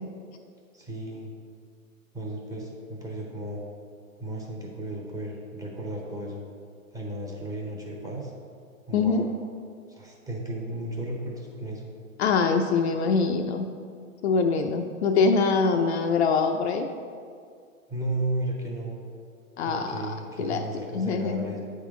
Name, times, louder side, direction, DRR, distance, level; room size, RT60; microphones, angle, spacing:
voice 1, 0.7-1.3 2.1-3.6 4.2-6.4 6.9-8.3 8.9-9.2 9.9-11.9 17.9-19.0 19.7-21.6, right 1 dB, 10° right, -3 dB, 0.8 m, -34 dB
voice 2, 8.9-9.2 12.2-13.7 14.2-16.9 19.6-20.6 20.9-21.5, left 4 dB, 50° left, 5 dB, 0.5 m, -24 dB
8.4 x 3.7 x 4.9 m, 2.2 s
hypercardioid pair, 125°, 42 cm